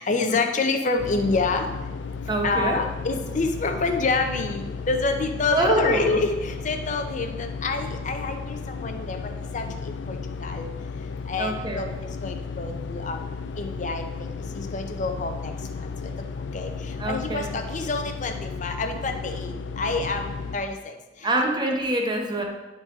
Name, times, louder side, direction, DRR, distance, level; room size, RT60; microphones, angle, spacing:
voice 1, 0.0-1.7 2.4-9.2 9.5-10.7 11.3-13.2 13.6-14.0 14.5-15.5 16.5-16.7 17.1-20.9, left 3 dB, 40° left, 5 dB, 0.7 m, -27 dB
sound 1, 1.0-20.6, left 4 dB, 75° left, 0.4 m, -34 dB
voice 2, 2.3-2.8 5.5-6.2 11.4-11.9 17.0-17.5 21.2-22.4, right 2 dB, 25° right, 2 dB, 0.9 m, -25 dB
10.5 x 4.0 x 3.7 m, 1.1 s
head